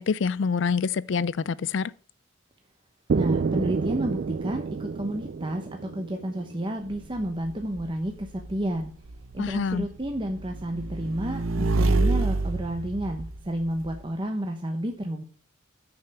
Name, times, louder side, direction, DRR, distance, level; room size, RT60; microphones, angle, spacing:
voice 1, 0.0-1.9 9.4-9.9, left 5 dB, 60° left, 0.4 m, -26 dB
voice 2, 3.1-8.9 9.3-15.2, right 1 dB, 25° right, 0.9 m, -31 dB
sound 1, 3.1-7.0, right 5 dB, 50° right, 0.3 m, -29 dB
Motorcycle / Engine, 6.9-14.0, right 2 dB, 90° right, 0.7 m, -29 dB
6.9 x 6.7 x 7.8 m
head